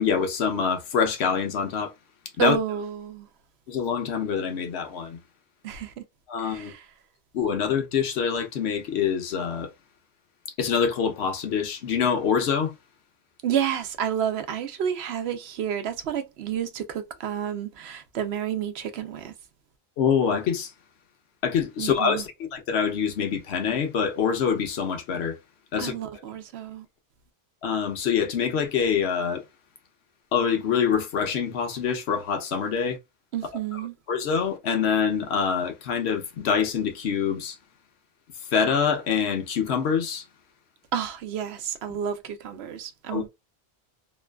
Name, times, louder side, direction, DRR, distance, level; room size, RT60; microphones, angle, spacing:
voice 1, 0.0-1.9 2.4-2.6 3.7-5.2 6.3-6.7 7.3-9.7 10.6-12.7 20.0-20.7 21.4-25.4 25.7-26.0 27.6-29.4 30.3-33.0 34.1-37.6 38.5-40.2 43.1-43.3, left 7 dB, 90° left, 1.0 m, -25 dB
voice 2, 2.4-3.3 5.6-6.0 6.4-6.9 13.4-19.3 21.8-22.2 25.8-26.9 33.3-33.9 40.9-43.3, right 9 dB, 80° right, 0.9 m, -30 dB
3.0 x 2.2 x 2.3 m
omnidirectional pair, 1.1 m